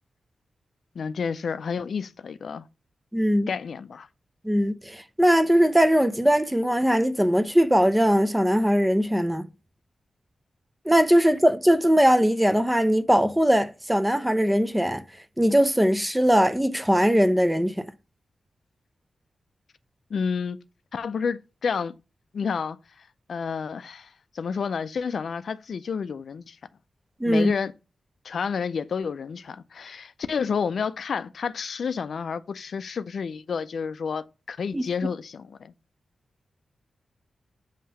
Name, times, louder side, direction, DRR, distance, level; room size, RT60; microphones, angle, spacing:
voice 1, 1.0-2.6 3.5-4.1 20.1-20.6 20.9-21.9 22.3-22.8 23.3-24.1 24.3-26.6 27.3-27.7 28.2-35.7, left 6 dB, 60° left, 0.4 m, -30 dB
voice 2, 3.1-3.5 4.4-9.5 10.9-15.0 15.4-17.9 27.2-27.5 34.7-34.9, equal, 5° right, 0.4 m, -20 dB
7.4 x 2.8 x 5.4 m
wide cardioid pair, 170°, 0 cm